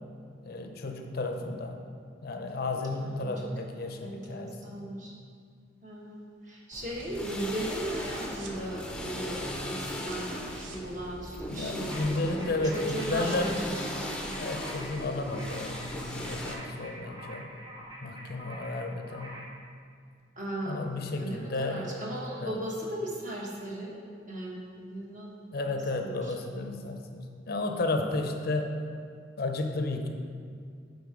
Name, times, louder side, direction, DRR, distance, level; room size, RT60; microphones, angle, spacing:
voice 1, 0.4-1.8 2.2-5.0 11.5-13.6 14.4-17.5 18.0-19.4 20.7-21.9 22.4-22.6 25.5-28.8 29.4-30.1, left 2 dB, 55° left, 4 dB, 0.6 m, -33 dB
voice 2, 2.9-3.5 4.0-5.2 5.8-14.4 20.4-24.0 24.3-25.3 25.7-26.6, right 1 dB, 40° right, -3 dB, 1.3 m, -37 dB
sound 1, 6.7-16.6, left 1 dB, 5° left, 0.6 m, -38 dB
sound 2, 8.0-8.7 9.0-9.3 9.5-9.7 10.0-11.9 12.3-12.4 12.6-13.7 14.1-14.2, right 4 dB, 85° right, 0.7 m, -49 dB
sound 3, 11.9-19.6, right 1 dB, 25° right, 0.9 m, -46 dB
8.8 x 3.7 x 4.9 m, 2.2 s
head